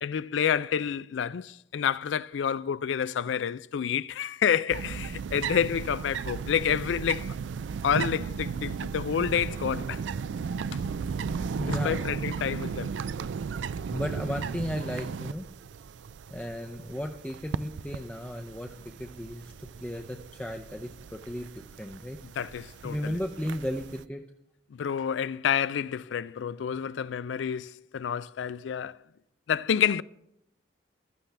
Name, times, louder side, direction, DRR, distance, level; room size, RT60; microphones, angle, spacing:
voice 1, 0.0-7.4 7.8-10.0 10.7-10.8 11.8-12.9 22.4-23.2 24.7-29.0 29.5-30.0, left 8 dB, 85° left, 0.4 m, -29 dB
sound 1, 4.7-24.0, right 6 dB, 85° right, 0.4 m, -36 dB
voice 2, 11.5-12.0 13.9-15.5 16.3-22.2 22.8-24.2, equal, 5° left, 0.5 m, -35 dB
14.5 x 13.0 x 3.4 m
head